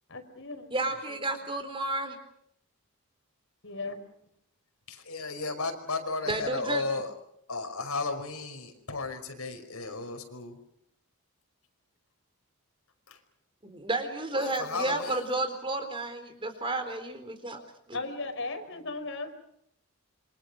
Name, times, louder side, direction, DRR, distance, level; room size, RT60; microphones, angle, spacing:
voice 1, 0.1-1.2 3.6-4.0 17.9-19.3, left 3 dB, 55° left, 8 dB, 4.9 m, -37 dB
voice 2, 0.7-2.2 6.3-6.9 13.6-17.6 17.9-18.0, right 2 dB, 25° right, 7 dB, 4.0 m, -32 dB
voice 3, 4.9-7.1 7.5-10.6 13.1-13.2 14.3-15.2, left 3 dB, 80° left, 5 dB, 5.4 m, -34 dB
28.0 x 26.0 x 6.2 m, 0.72 s
head